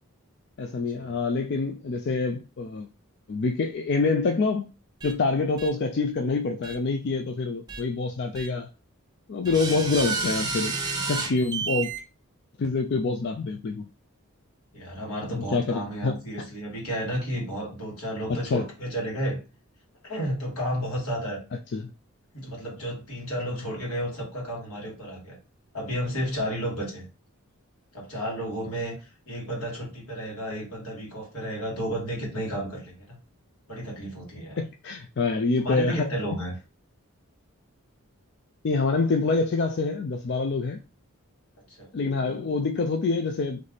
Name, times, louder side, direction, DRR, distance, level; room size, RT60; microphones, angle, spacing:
voice 1, 0.6-2.9 3.3-4.7 5.0-8.7 9.3-10.8 11.1-11.9 12.6-13.9 15.3-16.2 18.3-18.6 21.7-21.9 34.6-36.1 38.6-40.8 41.9-43.6, left 3 dB, 50° left, 0.4 m, -26 dB
sound 1, 5.0-5.1 5.6-5.7 6.6-6.7 7.7-7.8 8.3-8.5 9.4-12.0, right 4 dB, 20° right, 0.7 m, -30 dB
voice 2, 9.5-9.8 14.7-19.4 20.0-21.4 22.3-25.4 25.7-27.0 27.9-28.9 29.3-33.2 33.7-34.6 35.6-36.5 41.8-41.9, equal, 85° left, 2.2 m, -32 dB
3.3 x 3.2 x 3.9 m
head